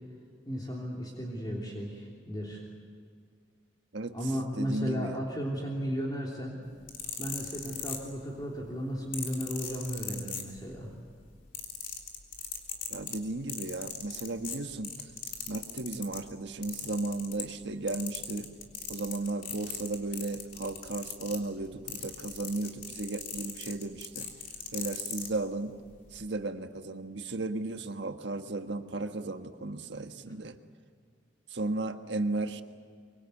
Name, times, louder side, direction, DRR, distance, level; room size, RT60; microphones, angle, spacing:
voice 1, 0.4-2.6 4.1-6.6 7.2-10.9, equal, 25° left, -2 dB, 3.2 m, -35 dB
voice 2, 4.5-5.2 12.9-15.1 15.5-18.5 18.9-24.3 24.7-25.7 26.1-30.6 31.5-32.6, right 2 dB, 70° right, 7 dB, 1.5 m, -35 dB
sound 1, 6.7-8.4 9.1-10.9 11.2-16.2 16.6-17.6 17.9-25.3 26.0-26.2, left 7 dB, 50° left, 3.5 m, -39 dB
24.5 x 24.0 x 8.4 m, 2.1 s
head